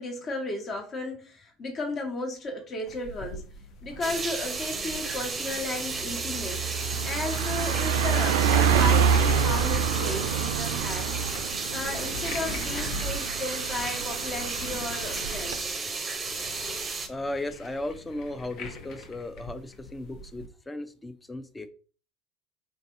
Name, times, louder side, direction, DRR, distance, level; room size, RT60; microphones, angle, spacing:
voice 1, 0.0-3.4 3.8-6.6 7.0-11.2 11.7-15.7, left 2 dB, 40° left, 1.2 m, -34 dB
sound 1, 2.9-20.5, left 2 dB, 55° left, 0.8 m, -42 dB
sound 2, 4.0-17.1, right 4 dB, 25° right, 0.6 m, -33 dB
Car passing by, 4.0-4.2 4.6-15.6, right 7 dB, 75° right, 0.4 m, -27 dB
voice 2, 17.1-21.7, left 1 dB, 15° left, 0.5 m, -36 dB
3.8 x 2.6 x 2.6 m
hypercardioid pair, 75°, 0 cm